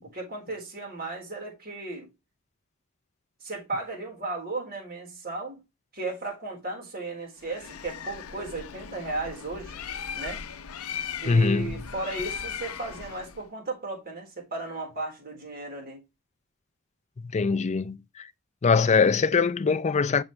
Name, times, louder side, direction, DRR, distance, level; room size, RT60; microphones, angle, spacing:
voice 1, 0.0-2.1 3.4-5.6 5.9-9.8 10.1-10.4 11.2-16.0, right 3 dB, 45° right, 4.0 m, -35 dB
Bird, 7.4-13.5, left 7 dB, 70° left, 0.6 m, -38 dB
voice 2, 11.3-11.7 17.2-18.3 18.6-20.2, left 5 dB, 30° left, 0.4 m, -22 dB
7.1 x 6.4 x 3.2 m
head